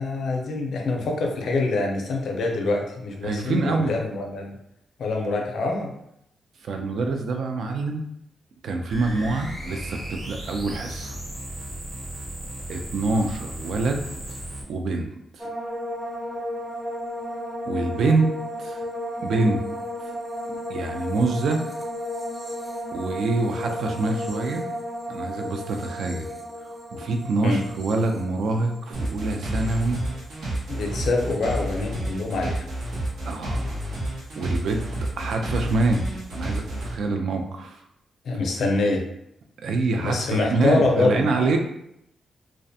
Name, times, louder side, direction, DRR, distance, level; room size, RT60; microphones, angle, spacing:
voice 1, 0.0-4.6 5.0-5.9 27.4-27.6 30.7-32.6 38.2-39.0 40.0-41.5, left 3 dB, 70° left, 2 dB, 0.4 m, -25 dB
voice 2, 3.2-3.9 6.6-8.0 8.6-11.2 12.7-14.0 14.3-14.4 14.7-15.5 17.7-18.3 18.6-18.9 19.2-19.6 20.7-21.7 22.9-24.7 25.1-26.3 26.6-30.0 33.3-33.7 34.3-34.8 35.2-36.1 36.3-37.8 39.6-41.6, right 3 dB, 70° right, 4 dB, 0.3 m, -25 dB
sound 1, 8.9-14.6, right 1 dB, 35° right, 0.9 m, -35 dB
sound 2, 15.4-30.6 30.9-31.5, equal, 5° right, 0.5 m, -34 dB
sound 3, 28.9-36.9, right 1 dB, 90° right, 0.8 m, -30 dB
2.4 x 2.1 x 2.6 m, 0.79 s
wide cardioid pair, 145°, 0 cm